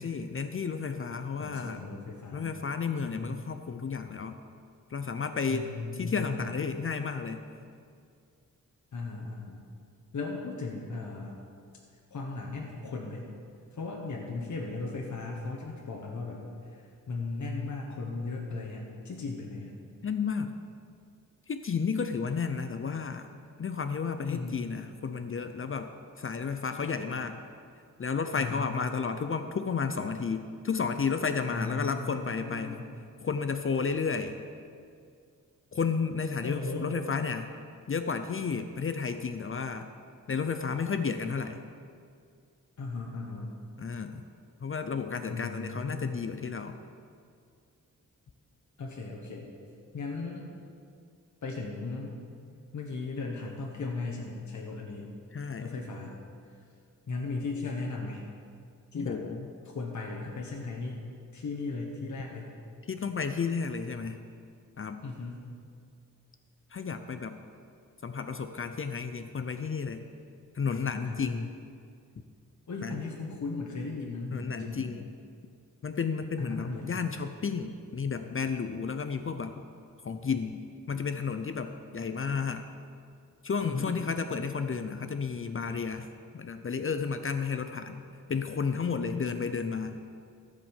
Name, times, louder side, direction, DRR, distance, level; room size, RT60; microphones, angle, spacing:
voice 1, 0.0-1.8 2.3-4.4 4.9-5.7 6.0-7.4 20.0-20.6 21.5-23.3 23.6-25.9 26.2-27.4 28.0-32.8 33.2-34.4 35.7-37.5 37.9-39.9 40.3-41.6 43.8-44.2 44.6-46.8 55.3-55.7 58.9-59.5 62.9-64.2 64.8-65.0 66.7-67.4 68.0-70.1 70.5-71.5 72.8-73.0 74.3-75.0 75.8-79.6 80.0-80.6 80.9-82.6 83.4-86.1 86.3-88.0 88.3-90.0, left 5 dB, 40° left, 8 dB, 0.5 m, -32 dB
voice 2, 1.4-2.5 3.0-3.3 5.5-6.6 8.9-9.6 10.1-11.4 12.1-13.3 13.7-19.8 24.3-24.6 28.4-28.7 31.5-32.9 36.4-36.9 42.8-43.6 45.3-46.2 48.8-49.5 49.9-50.5 51.4-52.1 52.7-55.1 55.6-56.1 56.5-56.6 57.1-58.3 58.9-59.2 59.6-61.0 61.3-62.5 65.0-65.4 71.0-71.4 72.7-74.9 76.4-77.0 83.6-83.9, left 3 dB, 55° left, -2 dB, 1.4 m, -37 dB
14.5 x 5.2 x 7.3 m, 2.3 s
wide cardioid pair, 110°, 34 cm